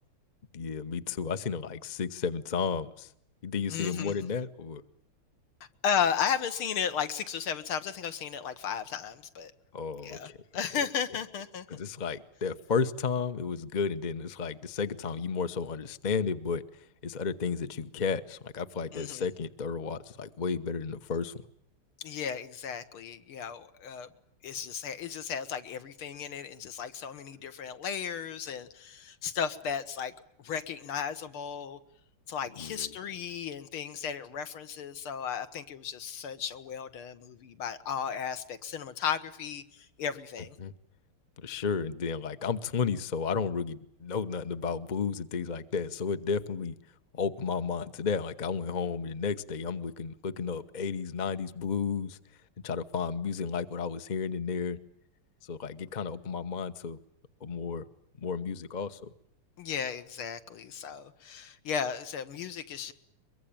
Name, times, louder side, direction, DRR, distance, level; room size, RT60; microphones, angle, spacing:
voice 1, 0.5-3.1 3.4-4.8 9.7-10.4 11.7-21.4 32.6-32.9 40.6-40.7 41.4-46.8 47.1-52.2 52.6-54.8 55.4-57.0 57.4-57.8 58.2-59.1, left 5 dB, 40° left, 11 dB, 0.6 m, -33 dB
voice 2, 3.7-4.3 5.8-9.5 10.0-11.7 18.9-19.3 22.0-24.1 24.4-30.1 30.4-31.8 32.3-40.6 59.6-62.9, left 7 dB, 75° left, 11 dB, 2.1 m, -34 dB
23.0 x 23.0 x 8.8 m, 0.73 s
omnidirectional pair, 2.4 m